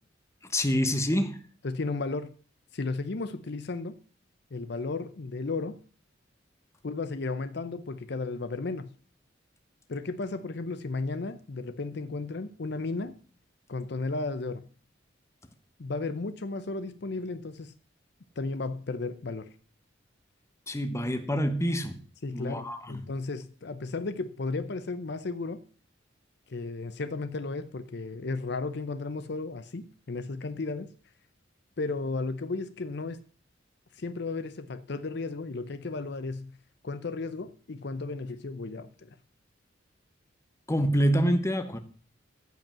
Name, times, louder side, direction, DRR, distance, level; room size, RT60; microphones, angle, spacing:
voice 1, 0.5-1.4 20.7-22.0 22.3-22.9 40.7-41.8, equal, 15° left, 1.1 m, -26 dB
voice 2, 1.6-2.3 2.7-4.0 4.5-5.8 6.8-8.9 9.9-13.2 13.7-14.7 15.8-17.7 18.4-19.5 22.2-25.6 26.5-30.9 31.8-33.2 33.9-36.5 36.8-39.2, left 3 dB, 60° left, 0.6 m, -34 dB
14.5 x 5.3 x 7.5 m
head